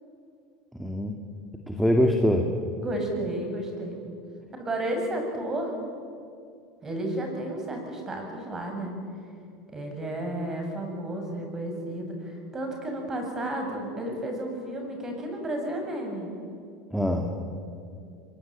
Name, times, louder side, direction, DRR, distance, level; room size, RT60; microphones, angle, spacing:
voice 1, 0.7-1.1 1.7-2.5 16.9-17.3, equal, ahead, 3 dB, 2.2 m, -23 dB
voice 2, 2.8-4.0 4.6-5.7 6.8-9.0 9.7-16.3, right 1 dB, 20° right, 3 dB, 7.4 m, -32 dB
25.0 x 23.0 x 8.9 m, 2.4 s
supercardioid pair, 125°, 2 cm